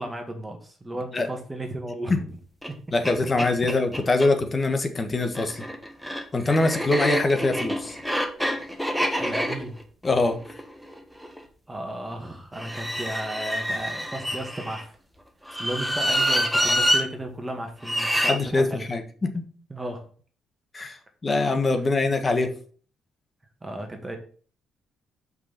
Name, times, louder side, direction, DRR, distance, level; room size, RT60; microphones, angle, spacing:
voice 1, 0.0-2.3 2.7-2.8 9.0-9.8 11.7-15.0 15.5-18.9 19.7-20.1 23.6-24.2, right 1 dB, 15° right, 3 dB, 1.9 m, -34 dB
sound 1, 2.6-2.7 3.0-3.1 3.4-4.3 5.2-11.4 12.5-14.8 15.5-17.0 17.8-18.4, equal, ahead, 1.3 m, -27 dB
voice 2, 2.9-5.6 6.3-8.0 10.0-10.4 18.3-19.4 20.7-22.5, left 3 dB, 30° left, 6 dB, 1.4 m, -23 dB
6.0 x 5.5 x 5.8 m, 0.43 s
cardioid pair, 90°, 0 cm